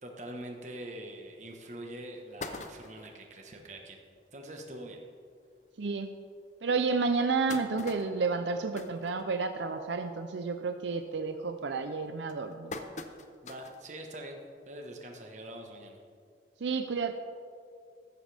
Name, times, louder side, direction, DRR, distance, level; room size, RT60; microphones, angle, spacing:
voice 1, 0.0-4.0 4.3-5.0 13.4-14.4 14.7-16.0, right 1 dB, 40° right, 2 dB, 1.3 m, -44 dB
sound 1, 1.3-1.4 1.8-1.9 2.2-3.2 3.8-3.9 4.2-4.3 4.6-4.8 5.5-5.6 6.1-6.2 6.9-9.8 10.1-10.5 10.8-11.2 11.8-13.9 14.3-14.4 15.6-15.7, left 3 dB, 40° left, 0.7 m, -44 dB
voice 2, 5.8-6.1 6.6-12.8 16.6-17.1, right 4 dB, 80° right, 7 dB, 0.6 m, -31 dB
14.0 x 11.5 x 3.5 m, 2.3 s
head